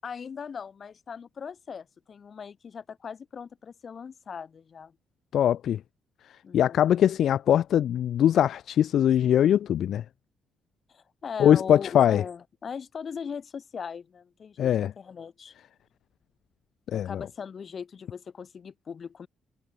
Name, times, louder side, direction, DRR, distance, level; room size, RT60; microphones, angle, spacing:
voice 1, 0.0-4.9 6.4-6.9 10.9-14.7 15.0-15.5 16.9-19.3, left 6 dB, 45° left, 5.6 m, -39 dB
voice 2, 5.3-5.8 6.5-10.0 11.4-12.2 14.6-14.9 16.9-17.2, left 10 dB, 70° left, 0.6 m, -22 dB
cardioid pair, 90°, 0 cm